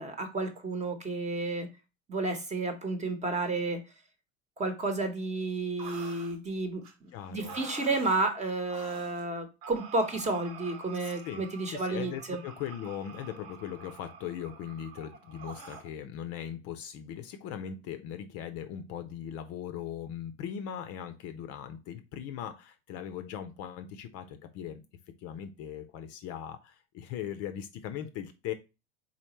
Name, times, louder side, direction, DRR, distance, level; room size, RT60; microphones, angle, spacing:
voice 1, 0.0-1.7 2.1-3.8 4.6-12.4, right 2 dB, 20° right, 7 dB, 1.1 m, -31 dB
sound 1, 5.8-6.4 6.8-6.9 7.4-8.3 8.7-9.2 9.6-15.9, right 5 dB, 55° right, 1.2 m, -47 dB
voice 2, 7.1-7.6 11.0-11.5 11.7-24.8 25.2-28.5, left 9 dB, 40° left, 8 dB, 0.6 m, -39 dB
4.3 x 4.1 x 3.0 m, 0.28 s
figure-of-eight pair, 80°, 37 cm